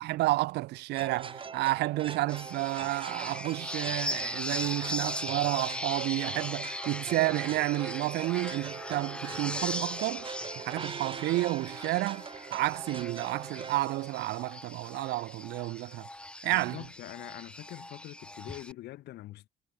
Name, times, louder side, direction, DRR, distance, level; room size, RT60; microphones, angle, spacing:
voice 1, 0.0-10.3 10.6-16.1 16.4-16.8, right 18 dB, 85° right, 2.0 m, -31 dB
sound 1, 0.9-13.8, right 5 dB, 30° right, 4.1 m, -42 dB
sound 2, 2.3-18.7, left 1 dB, 5° left, 0.9 m, -39 dB
voice 2, 16.4-19.5, left 15 dB, 75° left, 4.0 m, -44 dB
cardioid pair, 110°, 17 cm